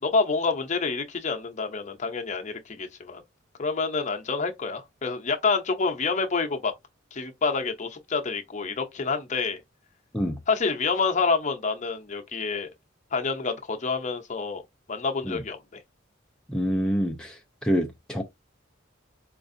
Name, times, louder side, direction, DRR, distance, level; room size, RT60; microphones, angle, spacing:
voice 1, 0.0-3.2 3.6-6.7 7.1-9.6 10.5-12.7 13.1-14.6 14.9-15.8, left 4 dB, 40° left, 0.6 m, -27 dB
voice 2, 16.5-17.3 17.6-18.2, equal, 5° left, 0.4 m, -26 dB
4.5 x 2.4 x 2.6 m
head